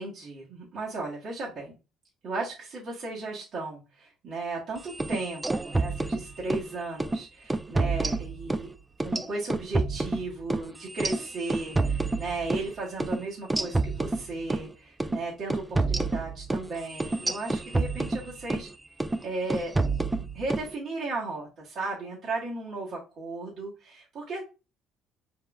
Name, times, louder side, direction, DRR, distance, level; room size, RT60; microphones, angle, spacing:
voice 1, 0.0-1.7 2.2-8.7 9.0-18.7 19.2-19.7 20.2-24.4, right 3 dB, 55° right, -5 dB, 1.5 m, -35 dB
sound 1, 4.9-6.7 7.0-7.2 7.5-8.7 9.0-12.7 13.0-13.2 13.5-14.7 15.0-15.2 15.5-18.7 19.0-19.2 19.5-20.7, right 3 dB, 15° right, 0.4 m, -28 dB
4.7 x 3.7 x 2.4 m, 0.30 s
supercardioid pair, 80°, 0 cm